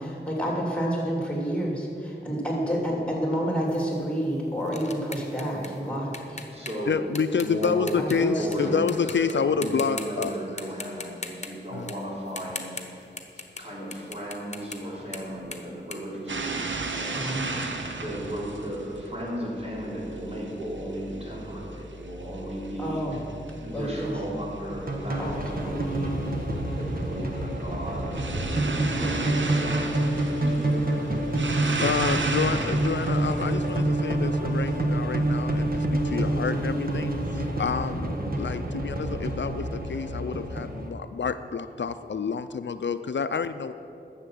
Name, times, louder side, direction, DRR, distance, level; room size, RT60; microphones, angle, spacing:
voice 1, 0.0-6.4 7.9-8.8 17.1-17.4 22.8-23.2 23.7-24.1 25.2-25.3 25.6-25.8, equal, 5° left, -2 dB, 3.1 m, -29 dB
sound 1, 3.7-8.6 8.9-9.3 9.6-10.3 10.6-13.6 13.9-16.9, left 3 dB, 35° left, 1.1 m, -40 dB
voice 2, 5.5-5.9 6.5-7.0 7.3-13.1 13.6-17.7 18.0-23.2 23.6-26.3 26.7-28.6 29.0-31.3 31.7-31.9 32.5-32.7, equal, 35° right, -5 dB, 3.5 m, -36 dB
voice 3, 6.9-10.3 11.7-11.9 31.8-43.7, left 5 dB, 75° left, 11 dB, 0.4 m, -28 dB
sound 2, 16.3-34.8, right 3 dB, 85° right, 0.9 m, -35 dB
sound 3, 24.7-40.9, right 1 dB, 50° right, 1.4 m, -27 dB
11.5 x 7.4 x 7.6 m, 2.7 s
wide cardioid pair, 55°, 19 cm